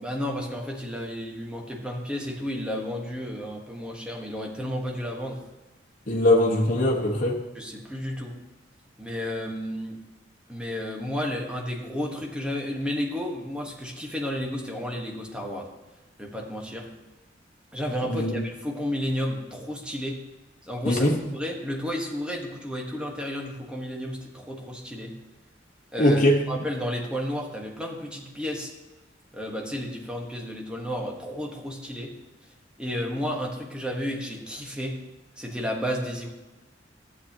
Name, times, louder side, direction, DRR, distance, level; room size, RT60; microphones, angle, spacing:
voice 1, 0.0-5.4 7.5-8.4 9.0-10.0 10.5-15.7 16.2-16.9 17.7-20.2 20.6-25.2 25.9-28.7 29.3-32.1 32.8-35.0 35.4-36.3, equal, 5° right, 0 dB, 1.3 m, -32 dB
voice 2, 6.1-7.4 18.0-18.4 20.8-21.2 26.0-26.4, left 1 dB, 45° left, -3 dB, 1.3 m, -21 dB
13.0 x 8.3 x 2.9 m, 1.1 s
head